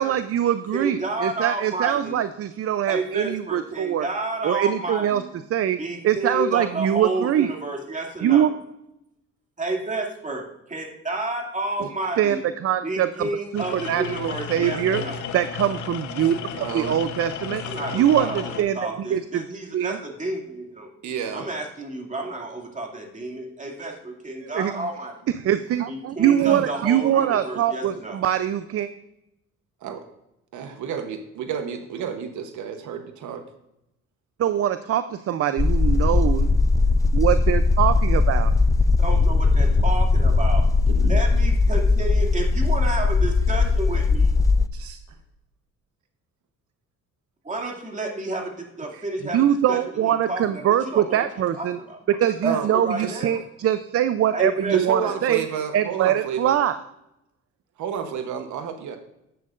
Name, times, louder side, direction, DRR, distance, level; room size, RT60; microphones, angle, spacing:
voice 1, 0.0-4.1 4.4-5.2 5.5-5.8 6.0-7.5 8.2-8.5 12.2-13.3 13.5-15.0 15.3-17.6 17.9-19.4 19.7-20.0 24.5-24.9 25.4-28.9 34.4-36.5 37.1-38.5 49.3-51.8 52.1-55.4 55.7-56.8, right 10 dB, 50° right, 12 dB, 0.5 m, -23 dB
voice 2, 0.7-2.2 2.9-5.3 5.8-8.5 9.6-12.4 12.8-15.2 17.6-20.9 21.3-25.1 25.9-28.2 39.0-40.6 41.0-44.3 47.4-51.3 51.5-53.4 54.3-55.1, right 2 dB, 25° right, 1 dB, 2.3 m, -31 dB
sound 1, 13.6-18.6, left 8 dB, 75° left, 0.9 m, -33 dB
voice 3, 16.6-17.0 21.0-21.4 26.4-26.6 29.8-30.0 30.5-33.4 40.9-41.2 44.7-45.0 52.4-52.7 53.0-53.2 54.7-56.6 57.8-59.0, right 7 dB, 75° right, 7 dB, 1.0 m, -31 dB
sound 2, 35.6-44.7, left 3 dB, 10° left, 0.3 m, -19 dB
11.0 x 8.4 x 2.5 m, 0.84 s
cardioid pair, 90°, 30 cm